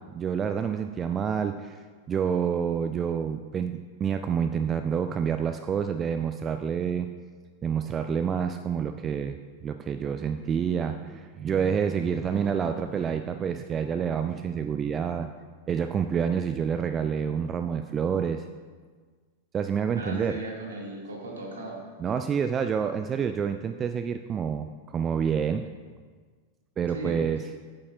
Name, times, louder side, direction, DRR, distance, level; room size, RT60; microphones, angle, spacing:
voice 1, 0.1-1.8 2.1-7.1 7.6-15.3 15.7-18.4 19.5-20.4 22.0-25.7 26.8-27.5, right 7 dB, 25° right, 8 dB, 0.3 m, -28 dB
voice 2, 19.9-21.8 26.9-27.2, right 2 dB, 70° right, -2 dB, 2.1 m, -36 dB
11.0 x 8.6 x 2.5 m, 1.5 s
figure-of-eight pair, 90°, 0 cm